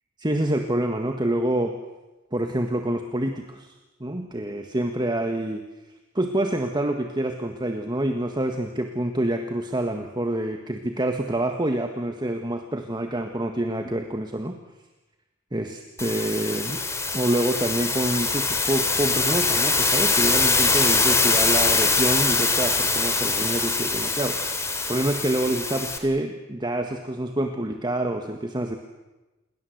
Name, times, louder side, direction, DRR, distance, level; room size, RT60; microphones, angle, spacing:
voice 1, 0.2-1.7 2.3-3.7 4.0-5.6 6.1-14.6 15.5-16.8 17.1-28.8, right 1 dB, 20° right, 5 dB, 1.6 m, -27 dB
sound 1, 16.0-26.0, left 3 dB, 15° left, 2.8 m, -23 dB
29.0 x 22.0 x 8.0 m, 1.1 s
head